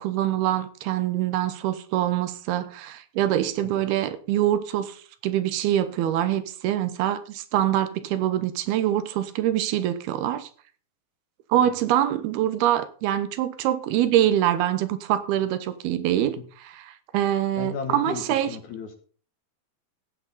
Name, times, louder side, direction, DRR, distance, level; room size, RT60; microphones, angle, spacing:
voice 1, 0.0-4.9 5.2-10.5 11.5-16.4 16.8-18.5, right 12 dB, 85° right, 2.9 m, -24 dB
voice 2, 17.6-19.0, left 6 dB, 60° left, 2.5 m, -35 dB
15.5 x 9.1 x 4.1 m
omnidirectional pair, 4.4 m